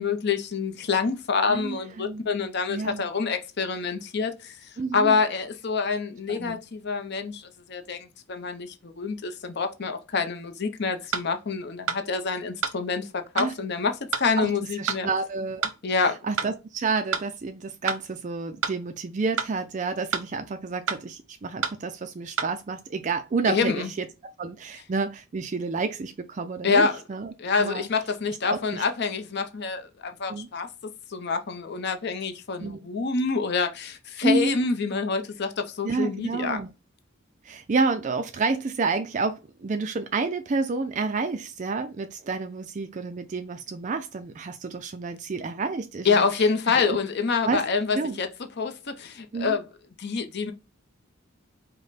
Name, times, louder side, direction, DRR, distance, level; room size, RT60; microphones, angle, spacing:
voice 1, 0.0-15.1 15.8-16.2 23.5-23.9 26.6-27.0 27.4-30.7 31.1-36.6 46.0-48.3 48.6-49.7 50.0-50.5, left 5 dB, 50° left, 0.6 m, -27 dB
voice 2, 1.4-2.2 2.7-3.0 4.8-5.2 6.3-6.6 13.3-13.5 14.4-14.5 14.8-15.7 16.0-24.1 24.4-27.3 27.6-27.9 28.4-28.8 30.3-30.5 32.6-32.8 34.2-34.6 35.8-36.7 37.4-46.3 46.7-47.0 47.5-47.6 47.9-48.2 49.3-49.6, right 4 dB, 35° right, 0.3 m, -29 dB
sound 1, 11.1-11.3 11.9-12.0 12.6-12.8 13.4-13.5 14.1-14.3 14.9-15.0 15.6-15.8 16.4-16.5 17.1-17.3 17.9-18.0 18.6-18.8 19.4-19.5 20.1-20.3 20.9-21.0 21.6-21.8 22.4-22.5, right 5 dB, 75° right, 0.8 m, -28 dB
5.2 x 2.1 x 4.0 m
head